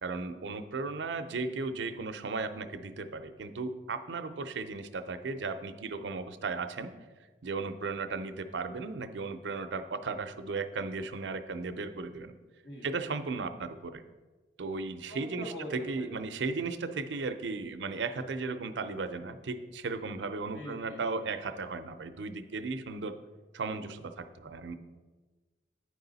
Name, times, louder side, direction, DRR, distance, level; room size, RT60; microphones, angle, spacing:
voice 1, 0.0-6.9 7.4-12.3 12.8-14.0 14.6-23.2 23.5-24.8, right 4 dB, 80° right, 9 dB, 0.5 m, -36 dB
voice 2, 15.1-16.1 20.5-21.0, equal, 80° left, 0 dB, 1.6 m, -43 dB
10.0 x 4.8 x 4.0 m, 1.3 s
head